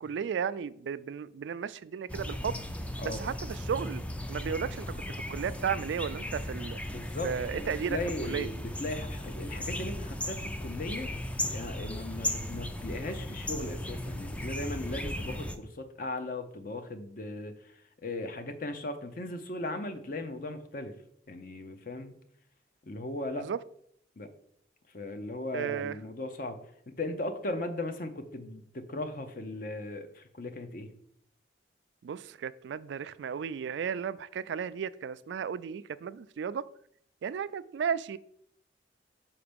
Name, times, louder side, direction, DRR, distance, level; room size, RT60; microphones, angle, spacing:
voice 1, 0.0-2.5 3.0-4.0 4.3-6.8 7.2-8.5 23.4-23.6 25.5-26.0 32.0-36.6 37.2-38.2, right 7 dB, 80° right, 16 dB, 0.3 m, -34 dB
sound 1, 2.1-15.6, left 1 dB, 5° left, 0.4 m, -36 dB
voice 2, 6.9-11.1 11.5-17.5 18.0-20.9 21.3-22.1 22.8-23.5 24.2-24.3 24.9-26.6 26.9-30.9, left 2 dB, 50° left, 8 dB, 0.7 m, -37 dB
5.8 x 4.3 x 5.2 m, 0.67 s
head